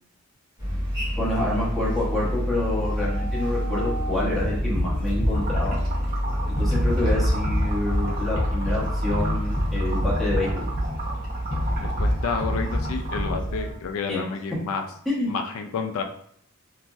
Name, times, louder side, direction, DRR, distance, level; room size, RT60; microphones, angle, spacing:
sound 1, 0.6-13.7, equal, 20° right, 1.2 m, -28 dB
voice 1, 1.2-5.8 6.6-10.6 14.1-14.2 15.1-15.3, left 1 dB, ahead, -8 dB, 0.9 m, -27 dB
sound 2, 4.3-13.9, equal, 60° left, 0.8 m, -28 dB
Liquid, 5.3-13.3, right 2 dB, 45° right, 0.9 m, -36 dB
voice 2, 11.8-14.8 15.3-16.0, left 5 dB, 80° left, 5 dB, 0.3 m, -30 dB
2.9 x 2.5 x 2.3 m, 0.65 s
head